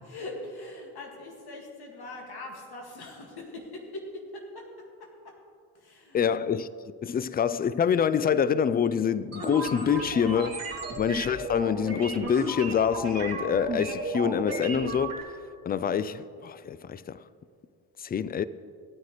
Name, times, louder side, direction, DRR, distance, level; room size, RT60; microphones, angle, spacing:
voice 1, 0.0-4.6 5.2-5.3 5.7-6.5 10.8-11.0, left 2 dB, 60° left, 2.2 m, -42 dB
voice 2, 6.1-6.7 7.0-15.3 15.7-17.2 18.0-18.4, left 7 dB, 25° left, 0.3 m, -26 dB
sound 1, 9.3-15.2, right 3 dB, 35° right, 2.8 m, -34 dB
15.5 x 9.3 x 3.3 m
hypercardioid pair, 50°, 44 cm